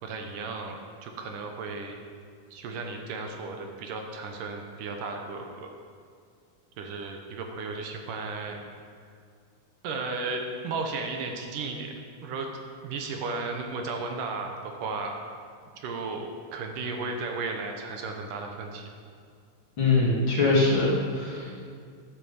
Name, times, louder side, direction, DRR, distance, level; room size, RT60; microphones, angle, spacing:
voice 1, 0.0-0.7 1.0-2.0 2.5-5.7 6.8-8.6 9.8-11.9 12.2-12.5 12.8-15.2 15.8-18.8, right 3 dB, 75° right, 3 dB, 2.4 m, -34 dB
voice 2, 19.8-21.6, left 3 dB, 40° left, -6 dB, 2.8 m, -23 dB
10.5 x 8.1 x 7.3 m, 2.2 s
omnidirectional pair, 4.0 m